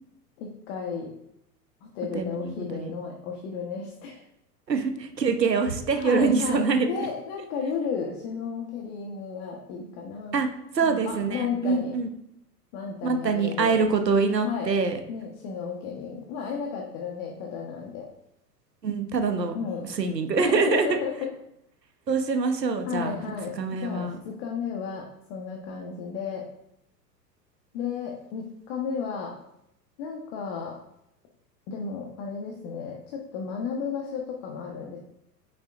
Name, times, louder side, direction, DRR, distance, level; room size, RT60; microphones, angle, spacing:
voice 1, 0.4-1.1 1.8-4.2 5.9-10.4 10.8-12.0 12.7-13.8 14.4-14.7 15.1-18.1 19.5-19.9 20.4-21.3 22.9-26.5 27.7-29.4 30.0-30.8 31.7-35.0, left 6 dB, 40° left, 1 dB, 1.4 m, -33 dB
voice 2, 2.1-2.9 4.7-6.9 10.3-10.5 10.7-12.1 13.0-15.0 18.8-19.5 19.9-21.0 22.1-23.1 23.6-24.2, right 4 dB, 85° right, 6 dB, 1.1 m, -25 dB
9.4 x 6.0 x 2.6 m, 0.80 s
figure-of-eight pair, 95°, 48 cm